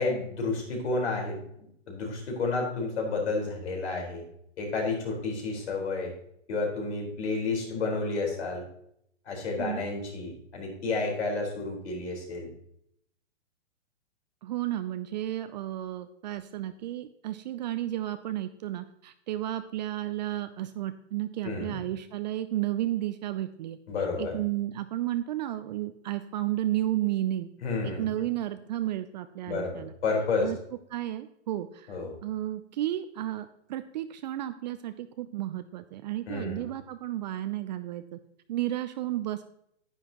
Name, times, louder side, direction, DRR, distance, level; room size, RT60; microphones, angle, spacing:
voice 1, 0.0-1.4 1.9-4.2 4.6-6.1 6.5-8.6 9.2-12.5 21.4-21.8 23.9-24.3 27.6-28.0 29.5-30.5 31.9-32.1 36.3-36.6, left 3 dB, 65° left, 1 dB, 4.4 m, -30 dB
voice 2, 14.4-23.8 24.2-27.5 27.8-29.9 30.4-30.6 30.9-38.2 38.5-39.4, right 13 dB, 40° right, 10 dB, 0.5 m, -32 dB
10.0 x 9.9 x 2.9 m, 0.72 s
hypercardioid pair, 125°, 36 cm